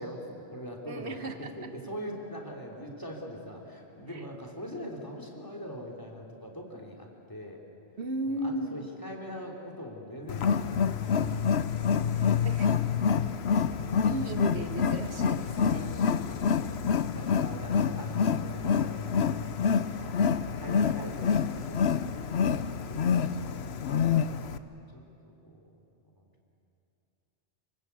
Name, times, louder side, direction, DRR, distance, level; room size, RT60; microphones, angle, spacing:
voice 1, 0.0-7.6 8.3-12.6 15.6-19.3 19.8-20.2 20.6-22.1 24.9-25.8 26.2-26.3, equal, 20° left, 1 dB, 3.4 m, -43 dB
voice 2, 0.9-1.5 4.1-4.3 4.7-5.0 8.0-8.9 12.1-12.9 14.0-16.0 22.9-23.3, right 2 dB, 90° right, 7 dB, 1.7 m, -36 dB
Wild animals, 10.3-24.6, left 6 dB, 80° left, 1.1 m, -27 dB
25.5 x 24.5 x 8.3 m, 2.8 s
omnidirectional pair, 1.1 m